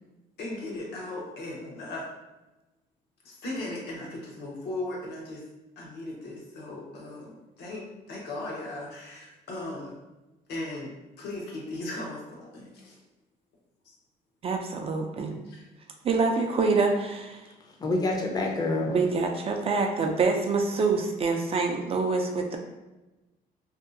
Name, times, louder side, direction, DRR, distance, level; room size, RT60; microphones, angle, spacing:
voice 1, 0.4-2.1 3.2-5.4 5.8-9.9 10.5-13.0 13.8-14.0 15.5-15.6, left 2 dB, 75° left, 0.8 m, -37 dB
voice 2, 14.4-15.3 16.0-17.4 18.9-22.6, right 4 dB, 35° right, 0.3 m, -26 dB
voice 3, 17.5-19.0, left 2 dB, 25° left, 0.5 m, -28 dB
2.7 x 2.3 x 2.5 m
cardioid pair, 110°, 17 cm